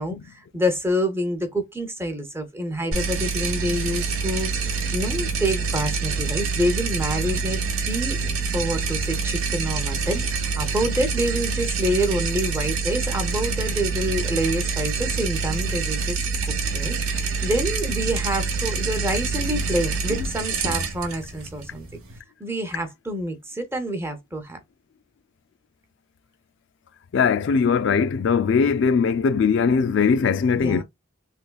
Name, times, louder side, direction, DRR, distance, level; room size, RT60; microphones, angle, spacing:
voice 1, 0.0-8.2 8.5-16.2 16.7-22.0 22.4-24.6 30.5-30.8, equal, 10° right, 0.6 m, -27 dB
sound 1, 2.9-22.2, right 4 dB, 85° right, 0.9 m, -26 dB
voice 2, 27.1-30.8, left 5 dB, 55° left, 0.3 m, -20 dB
3.4 x 3.2 x 2.2 m
head